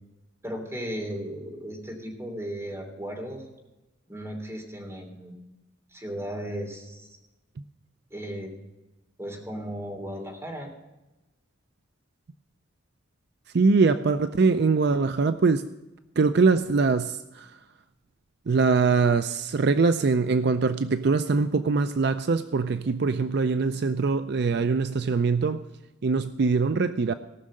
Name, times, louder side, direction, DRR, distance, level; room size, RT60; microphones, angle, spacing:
voice 1, 0.4-3.4 4.1-5.3 5.9-7.2 8.1-8.5 9.2-10.7, equal, 15° right, 1 dB, 3.1 m, -36 dB
voice 2, 13.5-15.7 16.2-17.6 18.5-25.6 26.0-27.1, right 4 dB, 60° right, 10 dB, 0.5 m, -23 dB
18.0 x 6.4 x 7.6 m, 1.0 s
head